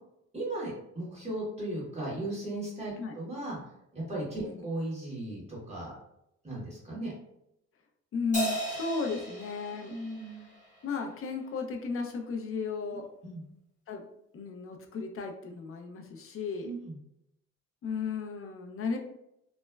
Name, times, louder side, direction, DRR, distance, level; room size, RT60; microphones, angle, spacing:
voice 1, 0.3-5.9 6.4-7.1 9.8-10.4 13.2-13.4 16.6-17.0, right 1 dB, 20° right, -6 dB, 1.4 m, -37 dB
voice 2, 8.1-10.0 10.8-13.0 13.9-14.0 14.3-16.7 17.8-19.0, left 4 dB, 45° left, 3 dB, 0.5 m, -34 dB
Crash cymbal, 8.3-11.0, right 1 dB, 25° left, 0.9 m, -36 dB
3.1 x 2.1 x 2.2 m, 0.81 s
cardioid pair, 90°, 30 cm